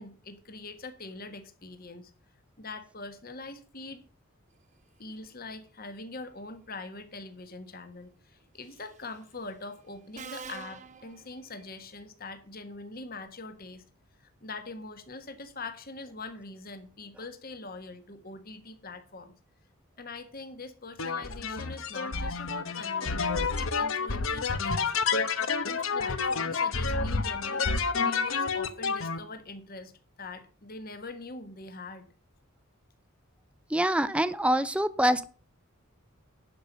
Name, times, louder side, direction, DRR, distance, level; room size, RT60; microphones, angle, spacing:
voice 1, 0.0-2.1 2.6-4.0 5.0-13.8 14.2-19.3 20.0-24.9 25.4-27.7 28.0-29.9 30.2-32.1, left 3 dB, 45° left, 8 dB, 1.5 m, -43 dB
Subway metro underground, 8.7-9.0 10.1-11.8, right 5 dB, 35° right, 1.1 m, -45 dB
sound 1, 21.0-29.2, left 4 dB, 65° left, 1.1 m, -29 dB
voice 2, 33.7-35.2, right 1 dB, 5° right, 13 dB, 0.5 m, -25 dB
11.5 x 5.4 x 7.3 m, 0.40 s
head